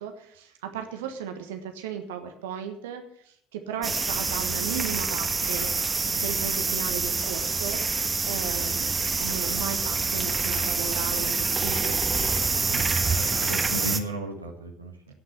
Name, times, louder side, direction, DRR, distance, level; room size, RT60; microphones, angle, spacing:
voice 1, 0.0-5.7 6.2-7.8 8.3-8.9 9.2-12.0, right 8 dB, 70° right, 6 dB, 1.3 m, -35 dB
sound 1, 3.8-14.0, right 4 dB, 25° right, 1.4 m, -26 dB
voice 2, 13.1-15.1, right 1 dB, 90° right, 2 dB, 1.4 m, -35 dB
17.0 x 6.0 x 7.9 m, 0.69 s
figure-of-eight pair, 55°, 0 cm